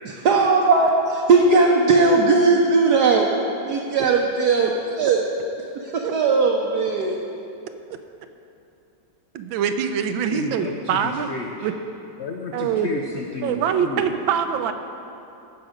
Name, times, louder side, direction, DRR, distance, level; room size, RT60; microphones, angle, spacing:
voice 1, 0.0-3.3 3.7-5.2 5.9-7.2, right 3 dB, 65° right, 0 dB, 1.2 m, -18 dB
voice 2, 9.3-11.3 11.6-11.7 12.5-12.9 13.4-14.7, right 8 dB, 85° right, 8 dB, 1.4 m, -24 dB
voice 3, 10.3-11.7 12.2-14.3, left 4 dB, 80° left, 1 dB, 0.6 m, -32 dB
16.0 x 6.0 x 5.1 m, 2.8 s
omnidirectional pair, 2.1 m